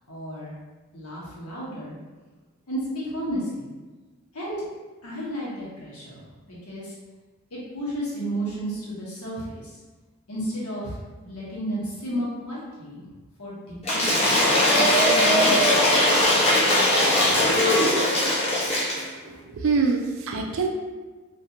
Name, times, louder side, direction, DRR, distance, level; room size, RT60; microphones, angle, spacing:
voice 1, 0.1-0.5 0.9-2.0 2.7-3.7 4.3-4.6 5.0-6.9 7.5-9.8 10.3-11.0 11.2-13.0 13.4-13.5 13.8-14.3 14.8-15.8 17.2-17.5, equal, 85° left, -7 dB, 1.1 m, -33 dB
Cheering / Applause / Crowd, 13.8-19.1, left 1 dB, 30° left, 0.7 m, -20 dB
voice 2, 19.3-20.7, right 4 dB, 60° right, 2 dB, 0.4 m, -25 dB
2.8 x 2.5 x 2.5 m, 1.3 s
head